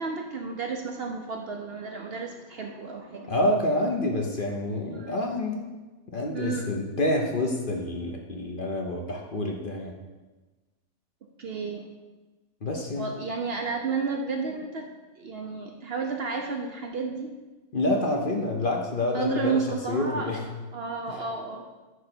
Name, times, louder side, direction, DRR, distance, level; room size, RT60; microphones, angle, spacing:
voice 1, 0.0-3.3 4.9-5.2 6.3-6.7 11.4-11.9 12.9-14.9 15.2-17.3 19.1-20.3 20.7-21.6, right 4 dB, 55° right, 2 dB, 0.8 m, -32 dB
voice 2, 3.3-5.7 6.1-9.9 12.6-13.1 17.7-20.4 21.1-21.2, left 1 dB, 45° left, 1 dB, 0.9 m, -28 dB
9.7 x 3.3 x 5.9 m, 1.2 s
omnidirectional pair, 1.4 m